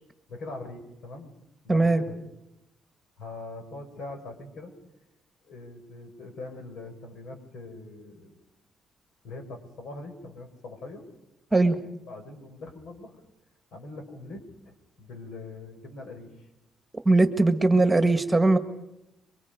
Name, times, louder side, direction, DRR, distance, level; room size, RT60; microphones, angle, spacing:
voice 1, 0.3-1.3 1.6-2.2 3.2-4.7 5.4-8.3 9.2-11.0 12.1-13.2 13.7-16.3, left 2 dB, 70° left, 5 dB, 5.5 m, -42 dB
voice 2, 1.7-2.0 11.5-11.8 17.1-18.6, right 2 dB, 15° right, 8 dB, 1.8 m, -20 dB
27.5 x 24.0 x 5.3 m, 0.86 s
cardioid pair, 115°, 0 cm